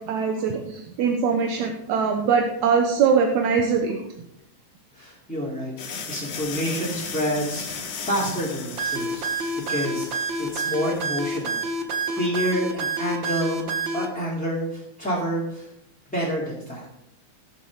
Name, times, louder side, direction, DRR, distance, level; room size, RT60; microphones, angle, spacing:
voice 1, 0.0-4.0, right 6 dB, 75° right, 3 dB, 2.4 m, -22 dB
voice 2, 4.9-9.3 9.7-11.6 12.1-15.7 16.1-16.9, equal, 5° left, -7 dB, 2.4 m, -28 dB
sound 1, 5.8-11.5, left 5 dB, 75° left, 2.9 m, -36 dB
sound 2, 8.8-14.1, right 2 dB, 50° right, 1.6 m, -27 dB
17.5 x 7.2 x 4.8 m, 0.80 s
omnidirectional pair, 3.4 m